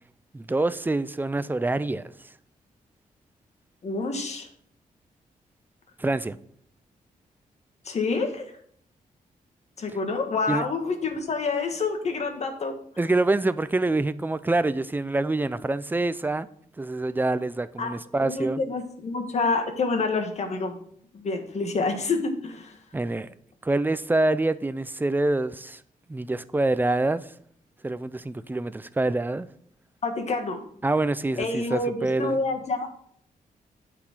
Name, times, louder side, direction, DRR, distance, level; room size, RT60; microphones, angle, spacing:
voice 1, 0.3-2.0 6.0-6.4 10.5-10.6 13.0-16.5 16.8-18.6 22.9-23.3 23.6-25.8 26.1-27.3 27.8-29.5 30.8-32.4, right 2 dB, 15° right, 0.5 m, -26 dB
voice 2, 3.8-4.5 7.8-8.5 9.8-12.7 17.8-17.9 18.2-20.8 21.1-22.8 30.0-30.6 31.4-32.9, left 3 dB, 50° left, 1.7 m, -28 dB
8.8 x 5.0 x 6.1 m
wide cardioid pair, 115°, 15 cm